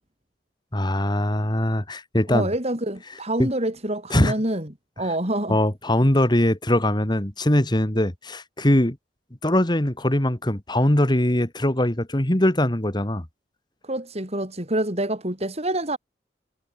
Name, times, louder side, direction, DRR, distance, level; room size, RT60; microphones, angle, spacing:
voice 1, 0.7-2.5 3.4-3.5 4.1-4.3 5.5-9.0 9.4-13.2, left 1 dB, 25° left, 2.0 m, -21 dB
voice 2, 2.3-4.7 5.0-5.6 13.8-16.0, right 1 dB, 35° right, 7.0 m, -26 dB
head